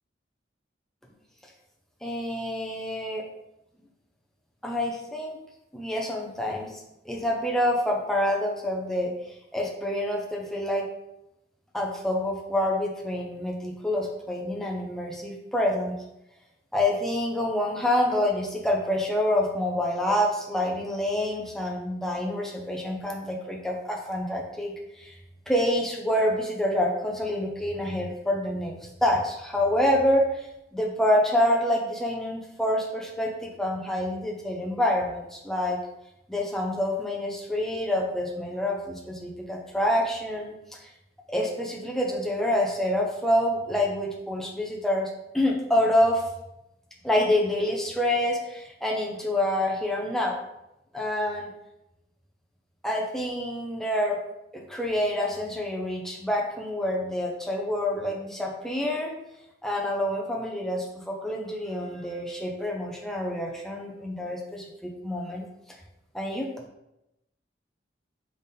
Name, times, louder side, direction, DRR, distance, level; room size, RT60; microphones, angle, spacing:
voice 1, 2.0-3.2 4.6-5.4 5.7-6.7 7.1-9.1 9.5-10.9 11.7-16.0 16.7-25.2 25.5-30.5 30.7-35.8 36.3-40.5 41.3-46.2 47.0-50.4 50.9-51.5 52.8-54.2 54.5-59.1 59.6-65.4 66.1-66.5, left 1 dB, ahead, -1 dB, 0.6 m, -27 dB
3.7 x 3.5 x 4.1 m, 0.87 s
head